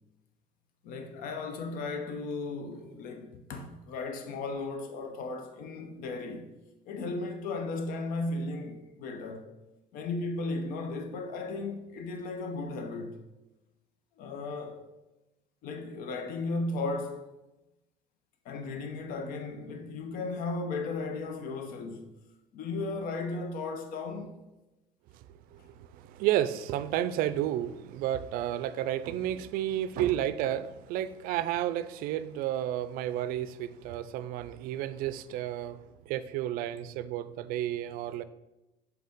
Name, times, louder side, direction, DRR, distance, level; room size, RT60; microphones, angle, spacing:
voice 1, 0.8-6.5 6.9-9.5 9.9-13.2 14.2-14.9 15.6-17.3 18.4-22.1 22.5-24.4, left 3 dB, 65° left, 0.7 m, -35 dB
voice 2, 25.5-38.2, right 12 dB, 70° right, 0.4 m, -32 dB
6.6 x 4.2 x 3.6 m
cardioid pair, 140°, 15 cm